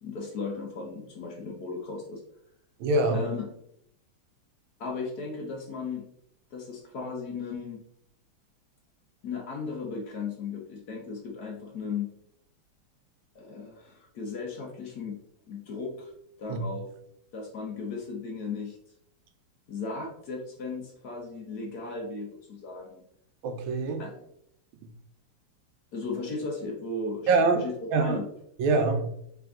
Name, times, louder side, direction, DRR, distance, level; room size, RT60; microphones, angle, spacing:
voice 1, 0.0-2.2 3.1-3.5 4.8-6.0 6.5-7.8 9.2-12.1 13.3-15.2 15.5-16.1 16.4-16.9 17.3-18.8 19.7-23.0 24.0-24.1 25.9-28.3, left 4 dB, 60° left, 1.1 m, -36 dB
voice 2, 2.8-3.2 16.5-16.6 23.4-24.0 27.3-27.6 27.9-28.2 28.6-29.0, right 3 dB, 80° right, 1.4 m, -24 dB
3.7 x 3.4 x 3.6 m
omnidirectional pair, 2.2 m